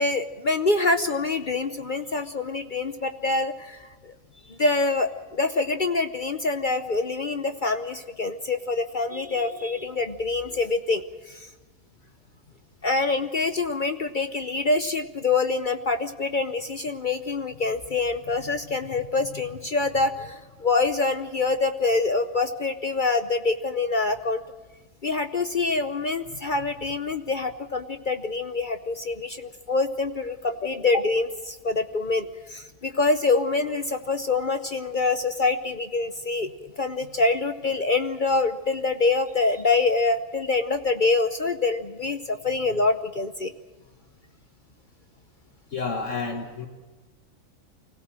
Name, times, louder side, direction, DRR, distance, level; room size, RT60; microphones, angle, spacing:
voice 1, 0.0-4.1 4.5-11.5 12.8-24.4 25.0-43.5, left 3 dB, 45° left, 8 dB, 0.9 m, -25 dB
voice 2, 45.7-46.7, left 4 dB, 60° left, 3 dB, 1.9 m, -30 dB
25.0 x 17.0 x 7.6 m, 1.3 s
omnidirectional pair, 1.4 m